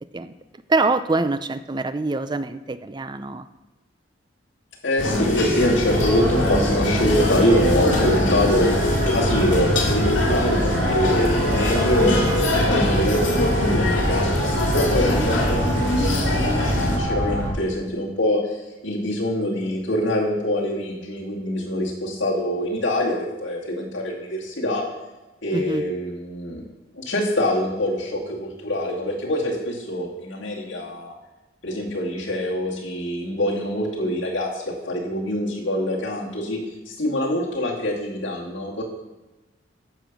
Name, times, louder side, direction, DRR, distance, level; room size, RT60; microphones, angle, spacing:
voice 1, 0.7-3.5 14.9-15.0 25.5-25.8, right 3 dB, 25° right, 12 dB, 0.5 m, -24 dB
voice 2, 4.8-14.2 14.7-24.8 25.4-26.6 26.9-31.2 31.6-36.6 36.9-38.8, left 1 dB, 70° left, -4 dB, 2.4 m, -25 dB
sound 1, 5.0-17.0, left 1 dB, 90° left, 2.2 m, -23 dB
sound 2, 5.9-17.5, equal, 65° right, 3.5 m, -25 dB
10.0 x 6.8 x 6.1 m, 1.1 s
head